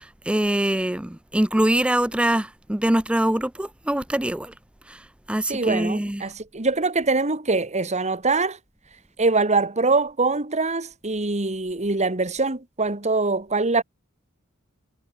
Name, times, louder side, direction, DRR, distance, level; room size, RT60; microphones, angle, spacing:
voice 1, 0.0-4.5 4.9-5.0 5.3-6.2, right 1 dB, 5° right, 0.5 m, -23 dB
voice 2, 5.5-8.6 9.2-13.8, right 3 dB, 35° right, 2.3 m, -23 dB
head